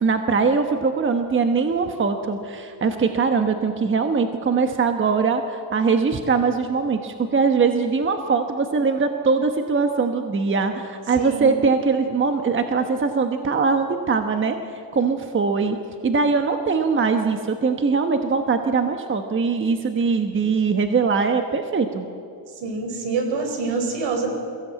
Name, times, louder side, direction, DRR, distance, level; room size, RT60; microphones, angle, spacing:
voice 1, 0.0-14.6 14.9-15.8 16.0-22.1, right 5 dB, 25° right, 6 dB, 1.2 m, -21 dB
voice 2, 11.2-11.6 22.6-24.3, right 4 dB, 70° right, 5 dB, 4.7 m, -26 dB
22.5 x 16.0 x 8.6 m, 2.4 s
cardioid pair, 130°, 45 cm